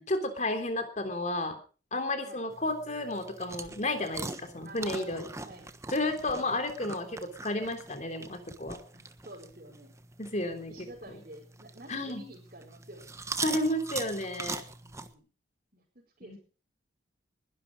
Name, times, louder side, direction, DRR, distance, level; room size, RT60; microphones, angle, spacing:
voice 1, 0.1-1.6 1.9-5.3 5.9-8.8 10.2-10.9 11.9-12.2 13.4-14.6 16.2-16.4, left 1 dB, 40° left, 7 dB, 3.3 m, -32 dB
sound 1, 2.5-15.1, right 3 dB, 15° right, 1.2 m, -42 dB
voice 2, 4.6-5.7 6.2-6.5 8.9-9.9 10.4-13.2 14.8-15.3 15.7-16.4, right 1 dB, 45° right, -3 dB, 5.0 m, -50 dB
21.0 x 12.0 x 5.2 m, 0.39 s
head